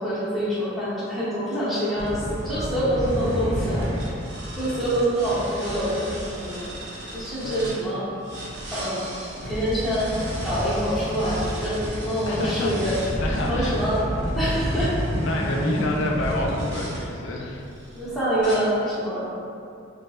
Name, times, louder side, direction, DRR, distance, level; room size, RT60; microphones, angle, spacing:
voice 1, 0.0-4.2 4.5-6.8 7.1-8.0 8.7-9.0 9.4-10.1 10.4-13.0 13.4-14.0 14.3-15.0 17.9-19.3, equal, ahead, -12 dB, 0.8 m, -26 dB
sound 1, 2.0-7.8 8.2-17.0 17.7-18.0 18.4-18.5, equal, 55° right, 0.6 m, -30 dB
voice 2, 7.4-7.8 12.3-13.9 14.7-14.8 15.2-17.7, left 2 dB, 65° left, -1 dB, 0.4 m, -29 dB
3.2 x 2.6 x 2.3 m, 2.5 s
head